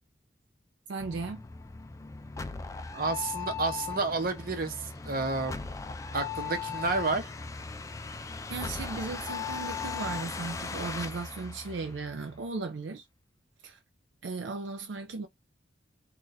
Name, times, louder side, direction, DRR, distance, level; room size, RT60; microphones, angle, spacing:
voice 1, 0.9-1.4 8.5-13.0 13.6-13.8 14.2-15.3, right 4 dB, 85° right, 0.4 m, -36 dB
sound 1, 1.0-12.5, left 5 dB, 20° left, 0.3 m, -38 dB
voice 2, 2.9-5.6 6.1-7.3, right 3 dB, 55° right, 0.8 m, -30 dB
2.6 x 2.4 x 3.9 m
head